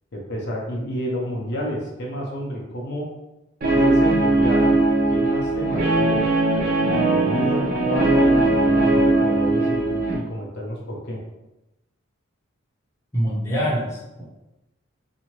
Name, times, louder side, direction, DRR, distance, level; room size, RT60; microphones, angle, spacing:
voice 1, 0.1-3.1 3.7-4.8 5.1-6.2 6.8-11.2, equal, 55° left, -2 dB, 0.5 m, -30 dB
Guitar, 3.6-10.1, right 2 dB, 45° right, 0.5 m, -19 dB
voice 2, 13.1-14.2, equal, 15° left, -6 dB, 0.7 m, -24 dB
2.7 x 2.4 x 2.9 m, 0.97 s
head